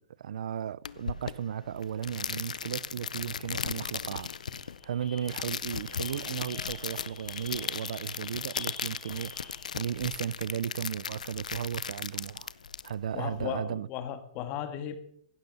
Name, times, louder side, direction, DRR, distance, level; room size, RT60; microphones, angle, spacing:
voice 1, 0.0-4.3 4.8-12.5 12.8-13.9, right 9 dB, 75° right, 0.4 m, -35 dB
sound 1, 0.8-13.5, left 6 dB, 90° left, 0.6 m, -37 dB
sound 2, 3.9-10.1, left 5 dB, 25° left, 2.9 m, -49 dB
voice 2, 13.1-15.0, left 9 dB, 40° left, 1.7 m, -36 dB
16.0 x 12.0 x 4.1 m
hypercardioid pair, 125°, 4 cm